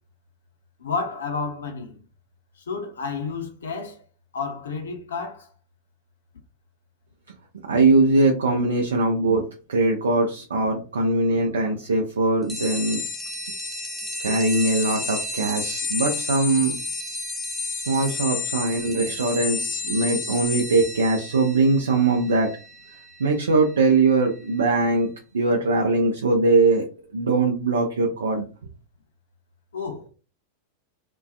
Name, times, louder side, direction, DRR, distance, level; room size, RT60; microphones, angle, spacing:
voice 1, 0.8-2.0 2.7-4.0 4.3-5.5 29.7-30.1, left 4 dB, 65° left, 0.6 m, -31 dB
voice 2, 7.7-13.0 14.2-16.8 17.9-22.5 23.2-25.1 25.3-26.9 27.1-28.4, right 3 dB, 70° right, 0.4 m, -21 dB
Triangle Ringing fast, 12.5-24.6, left 3 dB, 5° left, 0.5 m, -31 dB
2.4 x 2.2 x 2.3 m
figure-of-eight pair, 90°, 0 cm